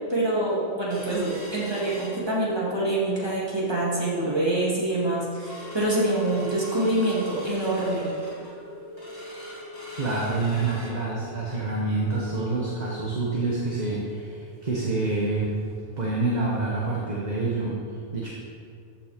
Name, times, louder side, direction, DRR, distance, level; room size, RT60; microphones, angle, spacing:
voice 1, 0.1-8.1, right 1 dB, 20° right, -6 dB, 2.6 m, -25 dB
sound 1, 0.9-2.8 3.2-3.3 3.6-4.0 4.4-4.5 4.9-15.4 15.7-15.8 16.2-16.4 16.9-17.0, left 2 dB, 20° left, 2.5 m, -42 dB
voice 2, 9.9-15.6 16.0-18.3, right 3 dB, 35° right, -4 dB, 1.3 m, -27 dB
14.0 x 5.9 x 5.1 m, 2.3 s
omnidirectional pair, 1.2 m